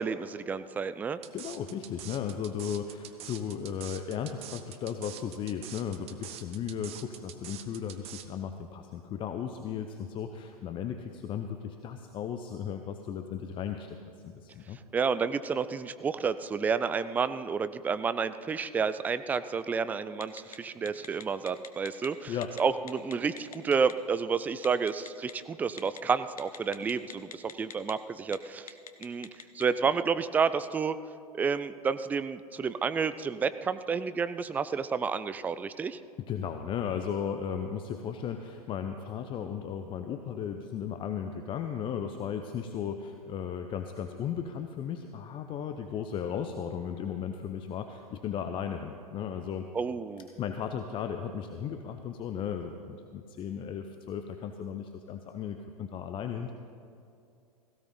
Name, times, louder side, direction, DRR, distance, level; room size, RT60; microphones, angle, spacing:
voice 1, 0.0-1.2 14.9-28.7 29.0-29.3 29.5-31.0 31.3-36.0 49.7-50.3, right 5 dB, 10° right, 13 dB, 0.3 m, -30 dB
sound 1, 1.2-8.3, right 11 dB, 30° right, 0.9 m, -45 dB
voice 2, 1.3-14.0 14.2-14.8 22.3-22.6 36.3-49.7 50.4-56.5, left 8 dB, 25° left, 7 dB, 0.7 m, -35 dB
Telephone, 20.2-20.6 20.8-22.1 22.4-22.6 22.9-23.9 24.6-25.3 25.8-26.0 26.4-27.9 28.2-28.4 28.7-29.6, left 7 dB, 70° left, 1.0 m, -43 dB
17.0 x 16.0 x 3.9 m, 2.5 s
figure-of-eight pair, 95°, 19 cm